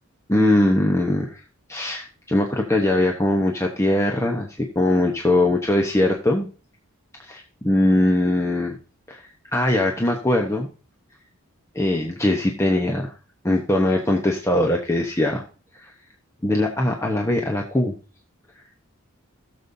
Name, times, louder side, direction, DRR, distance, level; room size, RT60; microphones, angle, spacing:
voice 1, 0.3-1.4 1.7-6.5 7.2-8.8 9.1-9.2 9.5-10.7 11.7-13.1 13.4-15.4 15.8-15.9 16.4-17.9, left 1 dB, 15° left, 0 dB, 0.9 m, -21 dB
17.0 x 6.9 x 2.7 m, 0.36 s
head